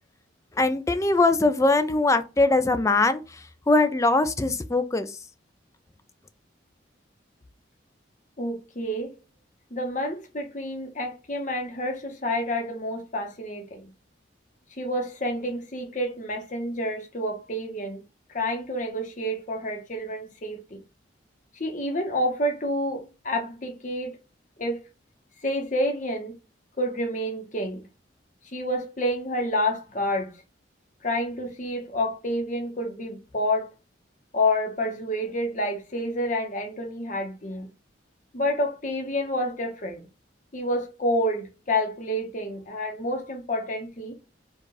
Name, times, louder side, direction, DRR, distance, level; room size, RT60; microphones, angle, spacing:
voice 1, 0.6-3.2 3.7-5.2, left 2 dB, 15° left, 0.3 m, -21 dB
voice 2, 8.4-9.1 9.7-13.8 14.8-18.0 18.3-20.8 21.6-24.1 24.6-24.8 25.4-26.3 26.8-27.8 28.5-30.4 31.0-33.7 34.3-37.7 38.3-40.0 40.5-44.1, left 1 dB, 40° left, 0.9 m, -29 dB
4.5 x 2.4 x 4.8 m
head